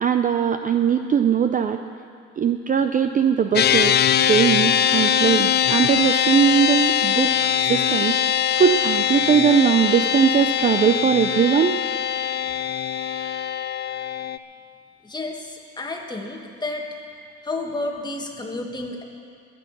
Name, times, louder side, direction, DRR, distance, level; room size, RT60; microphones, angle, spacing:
voice 1, 0.0-1.8 2.4-4.0 4.2-7.3 7.7-11.8, right 7 dB, 30° right, 7 dB, 0.4 m, -20 dB
sound 1, 3.6-14.4, left 9 dB, 35° left, 0.5 m, -22 dB
voice 2, 15.0-16.9 17.4-19.0, left 2 dB, 15° left, 2 dB, 1.5 m, -31 dB
21.0 x 8.5 x 6.0 m, 2.4 s
cardioid pair, 130°, 29 cm